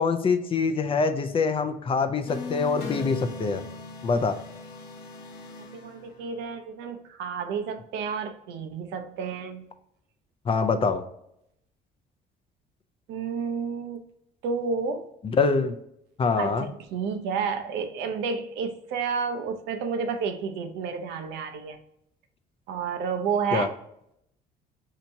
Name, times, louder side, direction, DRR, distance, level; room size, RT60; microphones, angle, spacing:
voice 1, 0.0-3.7 4.0-4.3 10.5-11.0 15.2-15.8 16.2-16.7 23.5-23.7, left 4 dB, 35° left, 9 dB, 0.5 m, -24 dB
sound 1, 2.3-6.5, left 4 dB, 80° left, 0.8 m, -39 dB
voice 2, 5.6-9.7 13.1-14.0 14.4-15.1 16.4-21.8 22.7-23.7, right 5 dB, 90° right, 7 dB, 0.6 m, -31 dB
4.4 x 2.8 x 2.6 m, 0.75 s
cardioid pair, 110°, 17 cm